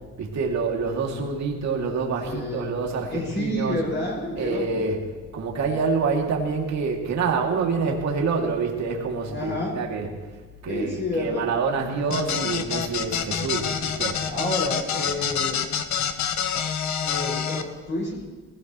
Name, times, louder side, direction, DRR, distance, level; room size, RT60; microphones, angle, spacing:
voice 1, 0.2-3.8 4.4-5.0 5.3-10.1 10.6-14.2 15.0-15.1, right 4 dB, 65° right, 0 dB, 2.7 m, -26 dB
voice 2, 2.3-2.7 3.1-4.9 9.3-9.8 10.7-11.5 11.9-12.4 14.3-15.6 17.0-18.2, left 1 dB, 40° left, -5 dB, 5.7 m, -29 dB
sound 1, 12.1-17.6, left 8 dB, 65° left, 1.1 m, -27 dB
19.5 x 16.5 x 3.2 m, 1.3 s
cardioid pair, 90°, 30 cm